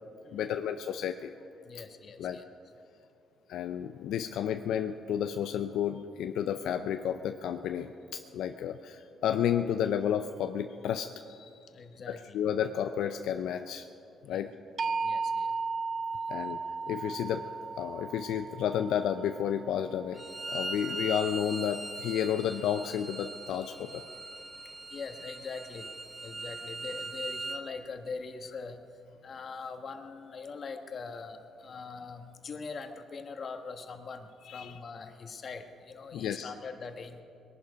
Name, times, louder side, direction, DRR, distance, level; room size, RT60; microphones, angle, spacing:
voice 1, 0.3-1.3 2.2-2.4 3.5-11.6 12.1-13.9 14.2-14.5 16.3-17.5 17.8-24.3 34.4-34.8 36.1-36.5, left 9 dB, 80° left, 7 dB, 0.5 m, -32 dB
voice 2, 1.6-2.4 11.7-12.4 14.3-14.4 15.0-15.6 16.4-16.5 20.7-20.9 24.6-25.9 26.2-28.8 29.2-37.2, left 4 dB, 50° left, 6 dB, 1.4 m, -42 dB
sound 1, 14.8-20.8, right 4 dB, 45° right, 0.4 m, -35 dB
Bowed string instrument, 20.1-27.6, right 2 dB, 25° right, 1.2 m, -40 dB
21.0 x 11.5 x 5.2 m, 2.6 s
cardioid pair, 90°, 0 cm